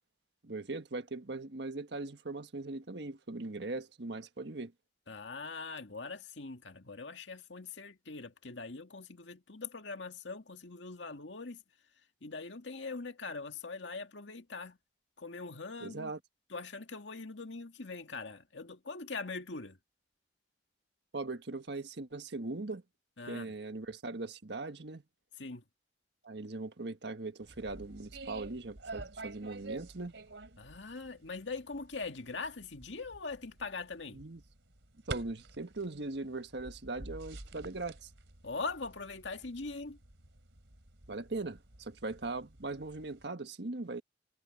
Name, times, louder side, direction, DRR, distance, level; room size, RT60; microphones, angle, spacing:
voice 1, 0.4-4.7 15.8-16.2 21.1-22.8 23.3-25.0 26.2-30.1 34.1-34.4 35.1-38.1 41.1-44.0, right 3 dB, 70° right, 1.4 m, -40 dB
voice 2, 5.1-11.6 12.2-14.8 15.2-16.1 16.5-19.8 23.2-23.5 25.4-25.6 30.6-34.2 38.4-40.0, left 4 dB, 80° left, 2.1 m, -42 dB
sound 1, 27.4-43.3, right 2 dB, 85° right, 3.2 m, -49 dB
head